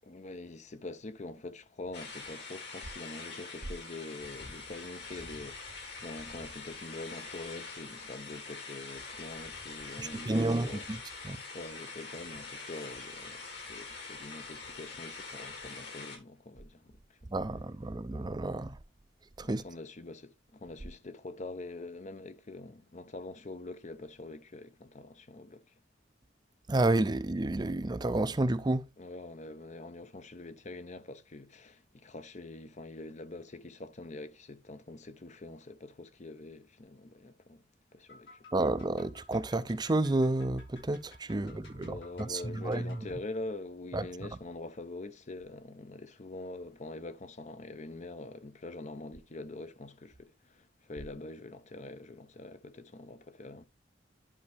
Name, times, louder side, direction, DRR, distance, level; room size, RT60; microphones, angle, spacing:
voice 1, 0.0-10.9 11.5-17.2 19.4-25.6 29.0-37.6 37.9-38.4 41.4-53.6, left 2 dB, 40° left, 0.7 m, -45 dB
sound 1, 1.9-16.2, left 4 dB, 65° left, 3.3 m, -44 dB
voice 2, 10.0-11.0 11.2-11.4 17.3-18.8 19.4-19.6 26.7-28.8 38.5-43.0 43.9-44.3, right 2 dB, 25° right, 0.5 m, -30 dB
sound 2, 38.1-43.1, left 3 dB, 80° left, 5.4 m, -56 dB
11.0 x 5.3 x 3.4 m
head